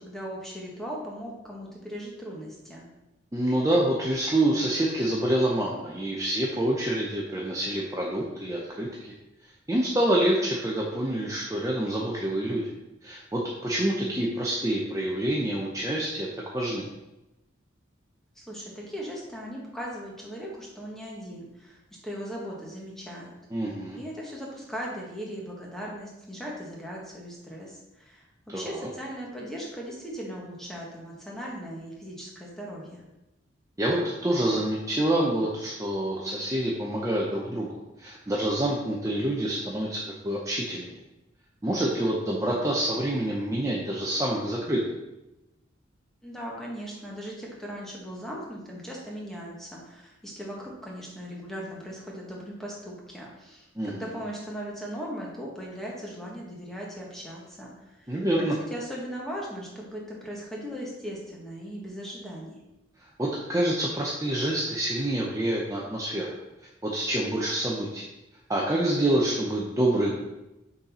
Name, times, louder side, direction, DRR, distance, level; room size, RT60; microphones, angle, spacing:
voice 1, 0.0-2.8 18.3-21.8 22.0-23.3 23.9-28.2 28.5-33.0 46.2-62.6, equal, ahead, -3 dB, 1.2 m, -38 dB
voice 2, 3.3-9.1 9.7-12.7 13.0-16.3 16.5-16.9 23.5-24.0 28.5-28.9 33.8-41.0 41.6-44.8 53.8-54.1 58.1-58.6 63.2-66.3 66.8-68.0 68.5-70.2, right 1 dB, 15° right, -4 dB, 0.6 m, -27 dB
6.3 x 4.1 x 4.2 m, 0.97 s
head